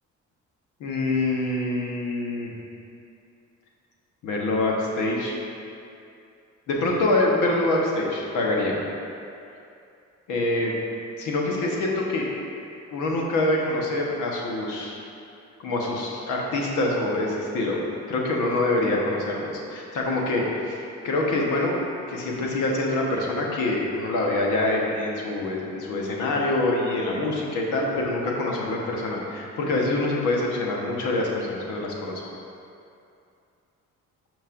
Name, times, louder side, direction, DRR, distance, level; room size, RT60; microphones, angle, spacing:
voice 1, 0.8-2.5 4.2-5.4 6.7-8.8 10.3-10.7 11.2-12.3 12.9-15.0 15.6-17.8 18.1-20.8 21.0-21.8 22.1-32.2, left 2 dB, 90° left, -2 dB, 1.2 m, -25 dB
11.0 x 5.3 x 2.6 m, 2.6 s
cardioid pair, 90°, 30 cm